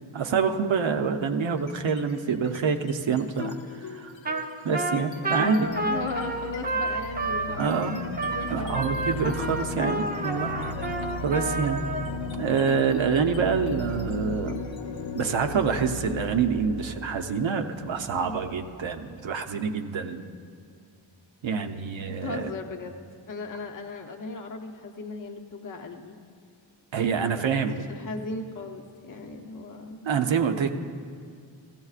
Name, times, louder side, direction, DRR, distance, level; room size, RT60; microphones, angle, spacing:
voice 1, 0.1-4.1 4.6-5.7 7.6-8.0 8.5-10.5 11.2-11.8 12.4-14.6 15.1-20.2 21.4-22.5 26.9-27.8 30.0-30.7, right 6 dB, 80° right, 6 dB, 0.7 m, -26 dB
sound 1, 1.6-2.1 2.5-19.1, left 3 dB, 75° left, 0.8 m, -37 dB
Trumpet, 4.3-4.5 4.7-12.1, right 3 dB, 20° right, 0.6 m, -30 dB
voice 2, 5.4-8.9 18.2-18.4 22.1-23.0 23.3-26.1 27.2-27.6 27.9-30.1, left 3 dB, 45° left, 3 dB, 0.7 m, -36 dB
16.0 x 15.0 x 2.4 m, 2.1 s
wide cardioid pair, 125°, 46 cm